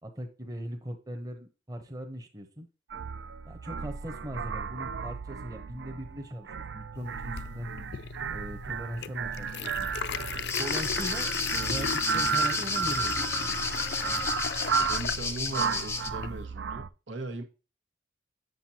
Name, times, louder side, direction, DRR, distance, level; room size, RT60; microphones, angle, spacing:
voice 1, 0.0-2.7 3.4-7.7 8.3-9.9 10.6-11.3 11.6-13.3 14.0-14.3, equal, 20° right, 0.9 m, -39 dB
sound 1, 2.9-16.9, right 6 dB, 75° right, 0.4 m, -34 dB
sound 2, 7.0-16.5, left 7 dB, 60° left, 0.4 m, -37 dB
sound 3, 10.5-16.1, left 3 dB, 15° left, 0.6 m, -32 dB
voice 2, 14.8-17.4, right 2 dB, 90° right, 1.6 m, -38 dB
7.9 x 7.0 x 2.8 m
head